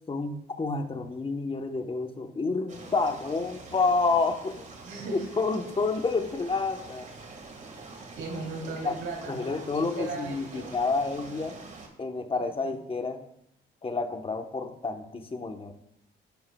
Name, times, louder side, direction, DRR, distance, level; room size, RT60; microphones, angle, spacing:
voice 1, 0.1-4.7 5.1-7.1 8.8-8.9 9.3-11.6 12.0-13.2 13.8-15.7, left 3 dB, 25° left, 6 dB, 1.1 m, -29 dB
sound 1, 2.7-11.9, right 3 dB, 40° right, 1.8 m, -46 dB
voice 2, 4.8-5.3 8.1-10.7 12.3-12.7, right 3 dB, 75° right, 0 dB, 3.2 m, -38 dB
11.0 x 10.5 x 2.3 m, 0.75 s
cardioid pair, 90°, 20 cm